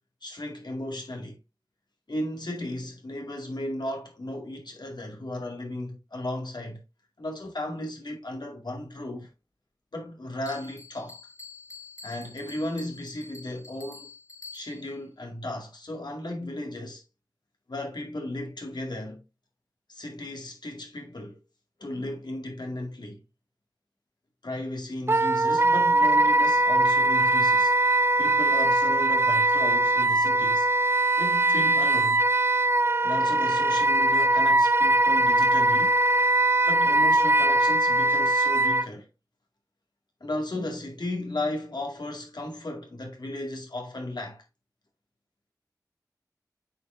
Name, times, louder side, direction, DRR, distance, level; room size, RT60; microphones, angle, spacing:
voice 1, 0.2-1.4 2.1-6.8 7.2-9.3 9.9-11.2 12.0-14.1 14.5-17.0 17.7-19.2 19.9-21.4 21.8-23.2 24.4-27.7 28.2-30.7 31.2-32.2 33.0-35.9 36.6-39.1 40.2-44.4, left 1 dB, 85° left, 2.2 m, -35 dB
Bell, 10.5-15.0, left 4 dB, 50° left, 1.9 m, -47 dB
Wind instrument woodwind instrument, 25.1-38.9, right 2 dB, 35° right, 0.4 m, -21 dB
8.2 x 5.6 x 2.6 m
wide cardioid pair, 40°, 7 cm